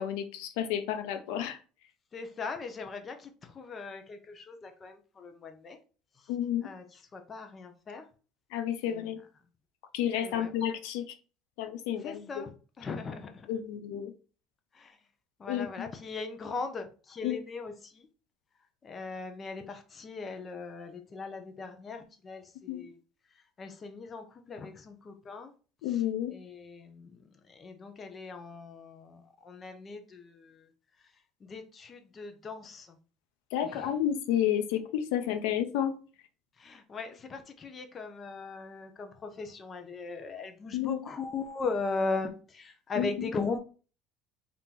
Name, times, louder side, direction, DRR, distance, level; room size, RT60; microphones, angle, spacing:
voice 1, 0.0-1.6 6.3-6.7 8.5-9.2 9.9-11.1 11.6-12.4 13.5-14.1 15.5-15.9 17.2-17.4 22.7-22.9 25.8-26.3 33.5-35.9 40.7-41.0 43.0-43.3, left 10 dB, 85° left, 0.6 m, -31 dB
voice 2, 2.1-5.8 6.6-6.8 7.1-8.0 8.9-9.1 10.2-10.5 12.0-13.5 14.7-15.0 15.4-18.1 18.8-23.0 23.6-25.5 25.9-26.0 26.3-27.2 27.5-30.7 31.4-33.0 33.6-33.9 36.6-43.6, left 4 dB, 30° left, 0.8 m, -39 dB
3.7 x 2.9 x 3.8 m
cardioid pair, 125°, 0 cm